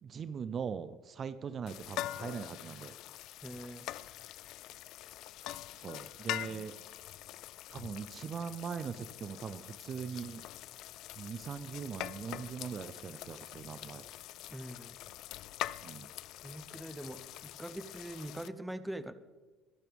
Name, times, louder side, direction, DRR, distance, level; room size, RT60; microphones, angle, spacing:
voice 1, 0.0-2.9 5.8-6.8 7.7-10.4 11.2-14.1 15.8-16.1, right 6 dB, 40° right, 13 dB, 0.5 m, -41 dB
sound 1, 1.7-18.5, left 14 dB, 65° left, 0.4 m, -44 dB
voice 2, 3.4-3.9 14.5-15.0 16.4-19.1, right 1 dB, 5° right, 12 dB, 0.8 m, -43 dB
22.0 x 12.0 x 3.5 m, 1.3 s
cardioid pair, 110°, 0 cm